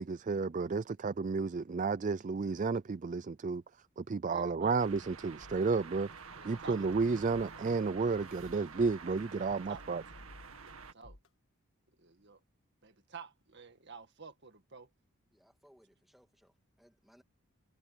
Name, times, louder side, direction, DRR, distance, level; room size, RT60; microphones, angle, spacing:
voice 1, 0.0-3.6 4.0-6.1 6.4-10.0, right 4 dB, 35° right, 0.4 m, -32 dB
voice 2, 4.2-4.8 6.4-6.8 9.4-9.8 10.6-11.2 12.0-12.4 12.8-14.9, right 5 dB, 50° right, 1.9 m, -50 dB
sound 1, 4.8-10.9, right 5 dB, 70° right, 2.1 m, -49 dB
sound 2, 5.4-5.6 6.2-6.3 6.7-7.7 8.2-9.4 9.7-10.7 11.0-11.3, left 1 dB, 65° left, 1.6 m, -54 dB
voice 3, 15.3-17.2, equal, ahead, 1.9 m, -65 dB
head